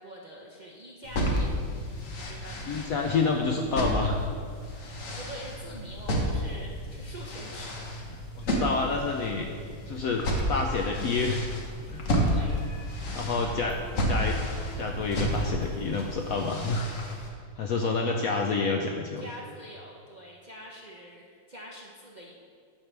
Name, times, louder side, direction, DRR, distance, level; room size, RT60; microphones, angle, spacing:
voice 1, 0.0-1.5 2.2-2.8 5.1-7.8 12.2-12.6 19.2-22.3, equal, 55° right, -3 dB, 0.5 m, -45 dB
sound 1, 1.0-17.3, equal, 50° left, 1.4 m, -32 dB
voice 2, 2.7-4.2 8.3-9.5 9.9-11.5 11.9-12.0 13.1-14.4 14.7-16.9 17.6-19.3, left 4 dB, 70° left, 2 dB, 0.8 m, -28 dB
sound 2, 8.4-16.3, right 1 dB, 35° right, 1.8 m, -46 dB
10.0 x 7.4 x 3.3 m, 2.1 s
omnidirectional pair, 1.9 m